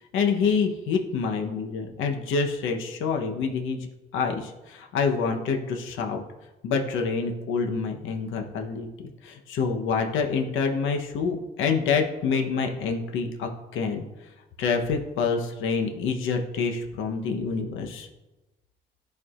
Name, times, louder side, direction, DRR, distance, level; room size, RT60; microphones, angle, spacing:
voice 1, 0.1-3.9 4.1-6.2 6.6-8.9 9.2-14.0 14.6-18.1, left 5 dB, 90° left, 3 dB, 0.9 m, -27 dB
13.0 x 4.6 x 2.4 m, 1.1 s
cardioid pair, 90°, 20 cm